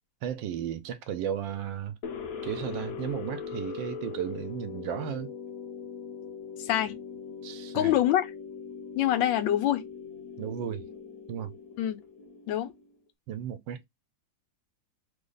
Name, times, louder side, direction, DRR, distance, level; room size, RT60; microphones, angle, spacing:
voice 1, 0.2-2.0 2.4-5.3 7.4-7.9 10.4-10.8 11.3-11.5 13.3-13.8, right 9 dB, 85° right, 1.3 m, -34 dB
sound 1, 2.0-12.9, left 6 dB, 60° left, 1.2 m, -41 dB
voice 2, 6.6-7.0 7.7-8.3 9.0-9.8 11.8-12.0 12.5-12.7, left 12 dB, 90° left, 1.3 m, -25 dB
3.3 x 2.0 x 3.8 m
omnidirectional pair, 2.0 m